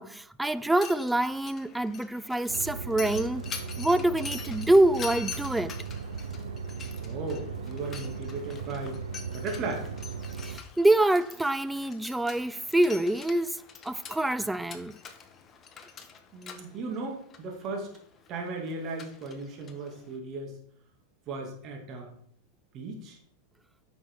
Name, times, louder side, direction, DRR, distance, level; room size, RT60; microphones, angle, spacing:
voice 1, 0.0-3.5 3.8-5.7 10.4-14.9, right 1 dB, 5° right, 0.4 m, -26 dB
Mechanisms, 0.6-20.2, left 6 dB, 25° left, 1.1 m, -45 dB
sound 1, 2.5-10.6, right 5 dB, 90° right, 0.7 m, -37 dB
voice 2, 7.0-9.0 9.3-9.9 16.3-17.9 18.3-20.5 21.3-22.1 22.7-23.2, right 3 dB, 40° right, 2.3 m, -36 dB
9.2 x 6.1 x 3.7 m
hypercardioid pair, 110°, 0 cm